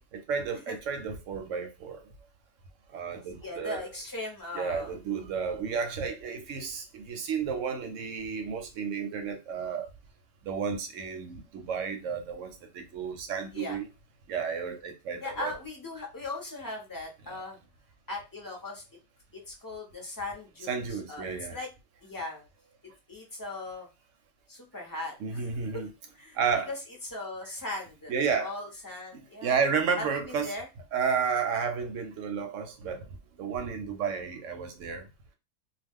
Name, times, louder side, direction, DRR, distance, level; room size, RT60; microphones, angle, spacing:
voice 1, 0.1-2.0 2.9-3.8 4.5-9.9 10.5-13.8 14.3-15.5 20.7-21.6 25.2-25.9 26.4-26.7 28.1-28.5 29.1-30.5 30.9-33.1 33.4-35.1, right 6 dB, 70° right, 0.9 m, -32 dB
voice 2, 3.4-4.9 13.5-13.8 15.2-17.6 18.1-18.8 19.3-21.7 22.0-22.4 23.1-23.9 24.5-25.8 26.1-26.4 26.7-28.1 28.4-29.6 30.0-30.7, left 2 dB, 20° left, 0.6 m, -39 dB
2.3 x 2.3 x 3.4 m
omnidirectional pair, 1.5 m